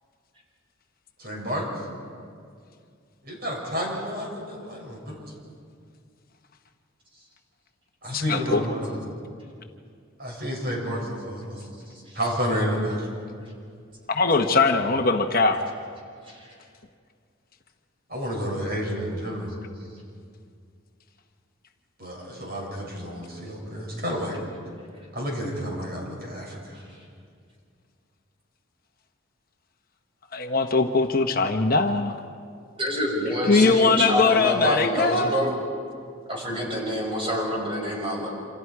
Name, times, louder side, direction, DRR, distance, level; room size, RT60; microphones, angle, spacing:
voice 1, 1.2-1.9 3.2-5.2 8.0-9.0 10.2-11.7 12.1-13.1 18.1-19.6 22.0-24.4 25.1-26.8, equal, 45° right, -2 dB, 6.9 m, -30 dB
voice 2, 8.1-8.6 14.1-15.6 30.3-32.2 33.5-35.4, left 3 dB, 40° left, 5 dB, 1.0 m, -21 dB
voice 3, 32.7-35.5 36.3-38.3, equal, 25° right, -1 dB, 6.1 m, -27 dB
28.5 x 27.5 x 4.8 m, 2.3 s
head